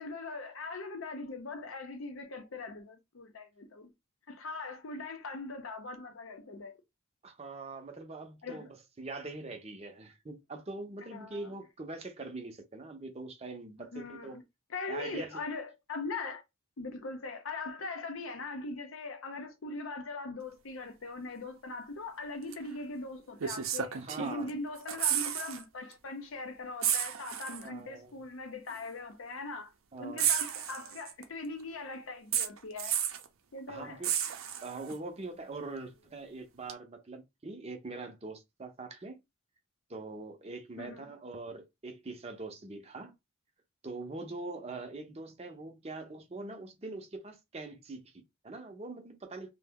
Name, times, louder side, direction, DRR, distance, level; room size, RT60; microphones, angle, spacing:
voice 1, 0.0-3.9 4.3-6.8 8.4-8.7 11.1-11.5 13.8-14.4 14.7-16.4 16.8-29.7 30.0-33.0 33.5-34.1 40.8-41.1, left 3 dB, 75° left, 0.6 m, -41 dB
voice 2, 7.2-8.7 9.0-14.4 14.9-15.4 24.0-24.6 27.6-28.2 29.9-30.3 33.7-34.1 34.6-39.2 39.9-43.1 43.8-49.5, right 3 dB, 30° right, 0.5 m, -43 dB
sound 1, 22.5-22.7 23.4-24.5 24.8-25.6 25.9-26.1 26.8-27.7 28.7-28.8 30.2-31.2 32.3-33.3 34.0-34.9 36.7-36.8, right 9 dB, 80° right, 0.5 m, -32 dB
2.6 x 2.0 x 3.5 m
head